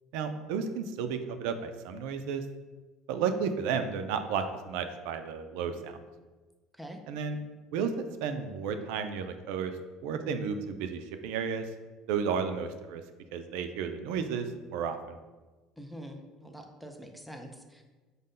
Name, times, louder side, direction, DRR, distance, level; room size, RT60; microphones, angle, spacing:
voice 1, 0.1-2.4 3.1-5.9 7.1-7.4 7.7-7.9 8.2-9.7 10.0-11.6 12.1-13.0 13.3-15.2, right 6 dB, 75° right, 8 dB, 0.3 m, -32 dB
voice 2, 15.8-17.8, equal, ahead, 4 dB, 0.3 m, -45 dB
5.1 x 2.1 x 3.7 m, 1.3 s
cardioid pair, 170°, 0 cm